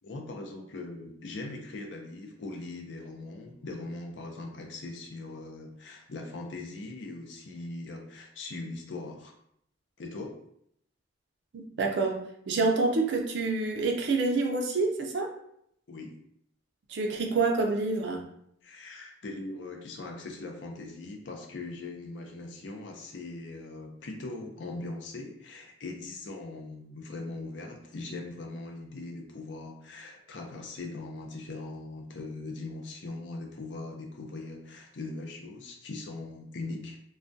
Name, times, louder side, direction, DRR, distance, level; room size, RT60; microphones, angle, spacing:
voice 1, 0.0-9.3 10.0-10.3 15.9-16.1 18.6-37.0, left 2 dB, 65° left, 2 dB, 0.5 m, -40 dB
voice 2, 11.5-12.2 12.5-15.3 16.9-18.3, right 3 dB, 60° right, 3 dB, 0.4 m, -27 dB
2.3 x 2.1 x 2.5 m, 0.71 s
head